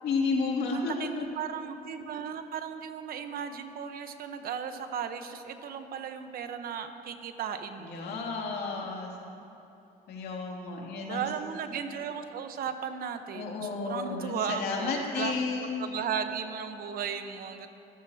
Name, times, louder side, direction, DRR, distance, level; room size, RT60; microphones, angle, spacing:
voice 1, 0.0-1.2 7.8-9.1 10.1-11.3 13.3-15.9, left 4 dB, 70° left, -1 dB, 2.7 m, -32 dB
voice 2, 0.6-8.2 8.8-8.9 11.1-15.4 15.8-17.7, right 7 dB, 60° right, 7 dB, 1.1 m, -36 dB
24.5 x 14.0 x 2.9 m, 3.0 s
cardioid pair, 110°, 17 cm